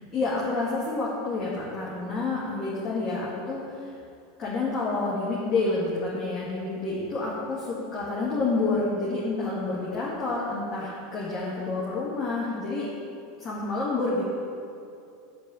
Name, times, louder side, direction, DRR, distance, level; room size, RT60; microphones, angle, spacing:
voice 1, 0.1-4.0 4.4-12.9 13.4-14.2, left 3 dB, 35° left, -6 dB, 1.8 m, -29 dB
7.9 x 4.6 x 6.9 m, 2.5 s
hypercardioid pair, 100°, 0 cm